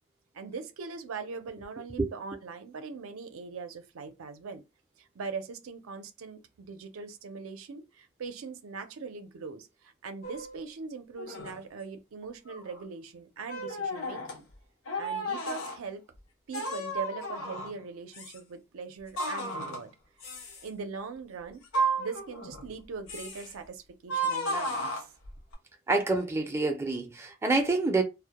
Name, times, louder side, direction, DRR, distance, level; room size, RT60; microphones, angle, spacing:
voice 1, 0.3-4.6 5.2-9.7 10.0-14.4 15.0-16.0 16.5-19.9 20.6-21.6 22.0-24.9, right 4 dB, 75° right, 0.5 m, -41 dB
sound 1, 10.2-10.6 11.2-11.6 12.2-12.8 13.5-14.4 14.9-15.8 16.5-17.8 18.1-18.4 19.2-19.9 20.2-20.7 21.6-22.7 23.1-23.5 24.1-25.5, right 2 dB, 75° left, 0.7 m, -33 dB
voice 2, 25.9-28.0, right 3 dB, 10° right, 0.4 m, -27 dB
2.1 x 2.1 x 2.8 m
head